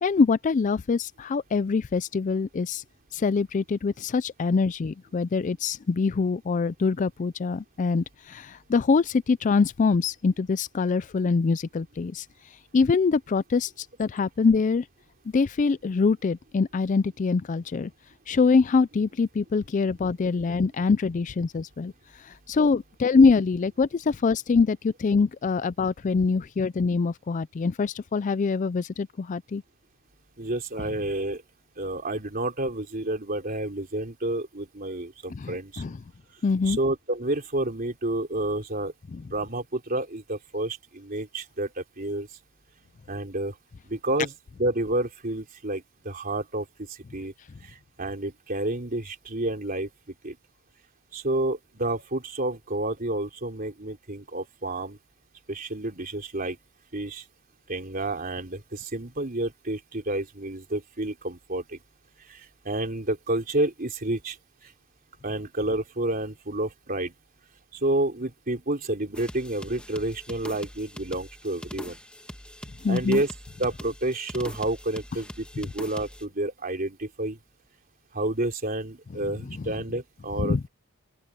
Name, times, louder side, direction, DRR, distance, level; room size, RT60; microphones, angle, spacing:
voice 1, 0.0-2.8 3.1-12.3 12.7-14.9 15.3-17.9 18.3-21.9 22.2-29.6 35.3-36.0 36.4-36.8 39.1-39.2 72.8-73.2 79.5-79.6 80.4-80.6, left 4 dB, 35° left, 0.3 m, -24 dB
voice 2, 30.4-31.4 31.8-35.8 36.7-38.9 39.2-42.3 43.1-43.5 43.9-46.7 47.1-47.3 48.0-49.9 50.2-50.4 51.1-55.0 55.5-56.6 56.9-57.2 57.7-61.8 62.3-62.4 62.7-64.4 65.2-67.1 67.7-72.0 72.9-73.3 73.6-77.4 78.1-80.7, right 1 dB, 40° right, 3.7 m, -29 dB
sound 1, 69.1-76.2, equal, 5° left, 1.4 m, -42 dB
open air
head